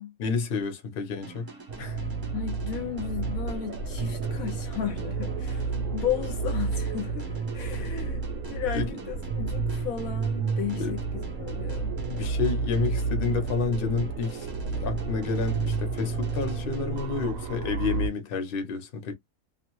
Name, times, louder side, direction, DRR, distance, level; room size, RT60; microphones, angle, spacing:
voice 1, 0.2-1.5 1.8-2.1 7.8-7.9 8.7-9.0 10.8-11.0 12.1-19.1, left 5 dB, 45° left, 0.8 m, -30 dB
sound 1, 1.2-17.8, right 3 dB, 25° right, 0.5 m, -47 dB
sound 2, 1.7-18.1, right 4 dB, 70° right, 1.0 m, -31 dB
voice 2, 2.3-11.9, left 10 dB, 75° left, 1.0 m, -34 dB
2.6 x 2.2 x 2.9 m
omnidirectional pair, 1.6 m